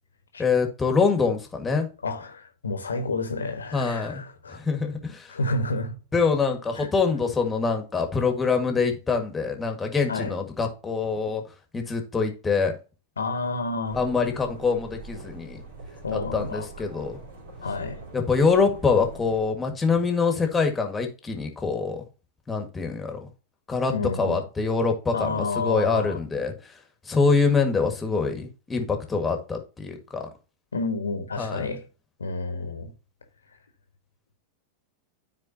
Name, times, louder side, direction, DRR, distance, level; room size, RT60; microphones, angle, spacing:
voice 1, 0.4-1.9 3.7-4.2 4.5-5.3 6.1-11.4 11.7-12.7 13.9-15.6 16.1-17.2 18.1-22.0 22.5-23.3 23.7-26.5 27.1-30.3 31.4-31.7, left 4 dB, 15° left, 1.8 m, -25 dB
voice 2, 2.0-4.6 5.3-5.9 6.8-6.9 10.1-10.4 13.2-14.0 16.0-16.7 17.6-18.0 23.9-24.4 25.1-26.2 30.7-31.8 32.2-32.9, left 3 dB, 75° left, 1.5 m, -30 dB
sound 1, 13.8-19.4, right 3 dB, 60° right, 3.3 m, -43 dB
13.0 x 4.5 x 2.8 m
figure-of-eight pair, 90°, 0 cm